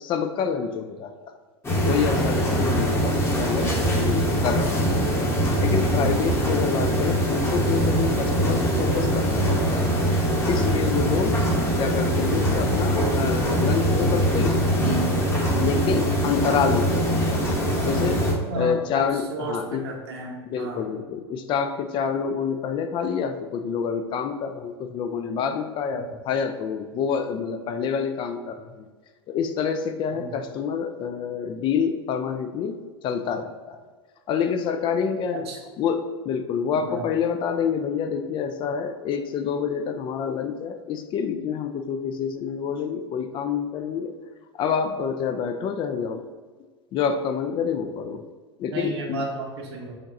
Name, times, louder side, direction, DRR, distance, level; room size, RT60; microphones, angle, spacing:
voice 1, 0.0-1.4 1.8-5.1 5.6-9.9 10.5-11.4 11.8-14.7 15.6-17.4 17.8-18.2 18.5-19.8 20.5-28.9 29.3-32.8 33.0-33.8 34.3-35.5 35.8-44.1 44.5-46.2 46.9-48.2 48.6-49.3, left 6 dB, 35° left, 7 dB, 0.4 m, -27 dB
sound 1, 1.6-18.3, equal, 20° left, 1.0 m, -22 dB
voice 2, 18.5-20.9 25.9-26.0 30.1-30.4 35.3-35.6 36.8-37.1 48.7-50.0, right 2 dB, 70° right, 0 dB, 0.9 m, -34 dB
5.0 x 2.9 x 2.5 m, 1.5 s
hypercardioid pair, 85°, 14 cm